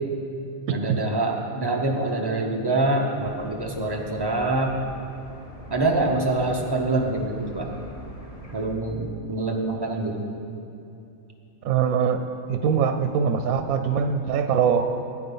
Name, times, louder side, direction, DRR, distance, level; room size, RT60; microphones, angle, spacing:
voice 1, 0.7-4.7 5.7-7.7 8.5-10.3, right 2 dB, 20° right, 1 dB, 0.8 m, -25 dB
sound 1, 3.2-8.7, equal, 25° left, 1.2 m, -43 dB
voice 2, 11.6-12.2 12.5-14.9, right 7 dB, 90° right, 8 dB, 1.0 m, -22 dB
9.5 x 9.3 x 5.5 m, 2.7 s
omnidirectional pair, 1.5 m